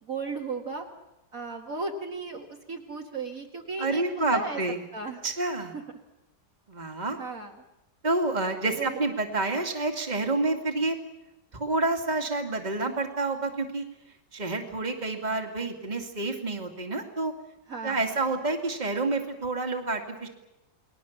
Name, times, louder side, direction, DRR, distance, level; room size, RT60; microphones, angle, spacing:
voice 1, 0.0-0.9 1.3-4.6 4.9-5.2 5.7-5.8 7.2-7.6 8.7-9.0 17.7-18.1, right 3 dB, 50° right, 1 dB, 2.2 m, -35 dB
voice 2, 3.8-4.8 5.2-5.7 6.7-7.2 8.0-11.0 11.5-13.8 14.3-17.3 17.8-20.3, right 2 dB, 25° right, 4 dB, 2.4 m, -28 dB
29.5 x 21.0 x 7.2 m, 0.95 s
omnidirectional pair, 2.0 m